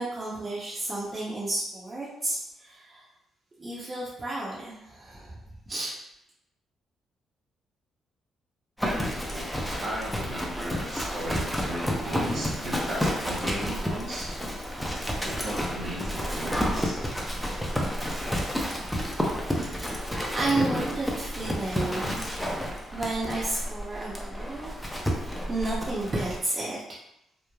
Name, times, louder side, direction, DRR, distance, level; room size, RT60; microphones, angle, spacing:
voice 1, 0.0-3.1 3.6-5.4 5.7-5.9 19.6-20.0 20.3-22.2 22.9-24.7 25.5-26.8, right 2 dB, 30° right, -7 dB, 0.7 m, -32 dB
Livestock farm animals working animals, 8.8-26.4, equal, 5° left, 0.5 m, -31 dB
voice 2, 8.8-9.5 9.8-14.3 15.2-17.0, right 1 dB, 55° right, -4 dB, 0.9 m, -36 dB
3.1 x 2.1 x 2.3 m, 0.79 s
cardioid pair, 90°, 0 cm